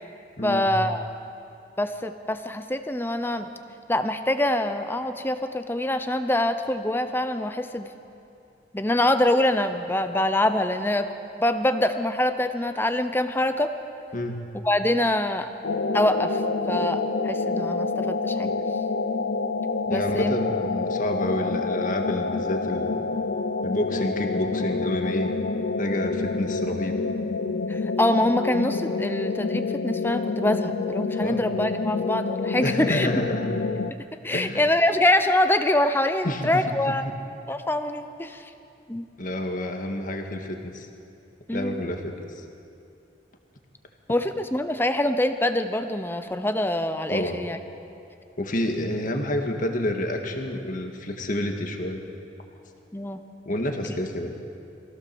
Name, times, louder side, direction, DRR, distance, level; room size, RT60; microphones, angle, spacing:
voice 1, 0.4-1.1 1.8-3.5 3.9-7.9 8.7-11.1 11.4-13.7 14.6-15.5 15.9-16.4 16.7-18.5 19.9-20.3 27.7-33.1 33.9-34.0 34.2-37.1 37.5-38.4 38.9-39.0 41.5-41.8 44.1-47.6 52.9-53.2, left 1 dB, 10° left, 9 dB, 0.8 m, -24 dB
sound 1, 15.6-33.9, left 4 dB, 70° left, 0.6 m, -28 dB
voice 2, 19.9-23.0 23.6-25.4 25.8-26.9 31.2-31.4 32.6-33.5 34.3-34.7 36.2-36.9 39.2-40.9 41.5-42.4 47.1-47.4 48.4-52.0 53.5-54.3, left 1 dB, 45° left, 3 dB, 1.9 m, -29 dB
23.0 x 16.0 x 7.1 m, 2.7 s
head